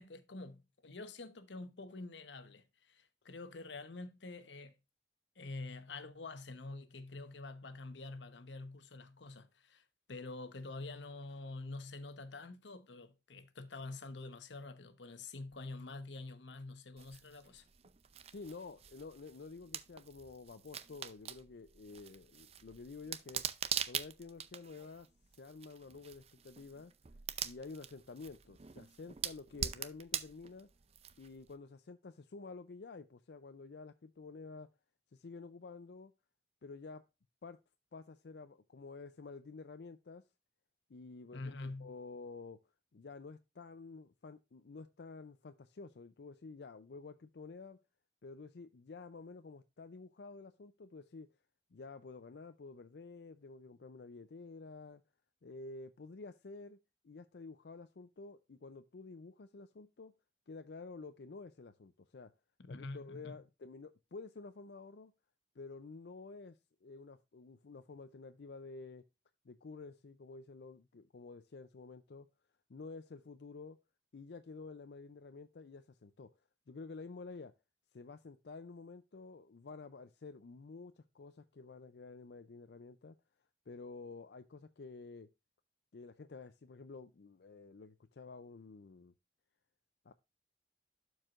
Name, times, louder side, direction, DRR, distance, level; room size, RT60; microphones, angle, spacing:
voice 1, 0.0-4.7 5.4-17.6 41.3-41.9 62.7-63.3, left 3 dB, 90° left, 1.0 m, -47 dB
sound 1, 17.0-31.5, right 9 dB, 35° right, 0.5 m, -44 dB
voice 2, 18.3-23.4 23.8-25.1 25.3-26.9 27.4-30.7 31.2-34.7 35.1-36.1 36.6-37.0 37.4-37.6 37.9-40.2 40.9-42.6 42.9-47.8 48.2-51.3 51.7-55.0 55.4-56.8 57.0-60.1 60.5-62.3 62.7-65.1 65.6-69.0 69.4-72.3 72.7-73.8 74.1-76.3 76.7-77.5 77.9-83.2 83.7-85.3 85.9-89.1 90.0-90.1, left 4 dB, 70° left, 0.5 m, -50 dB
12.0 x 4.8 x 2.5 m
head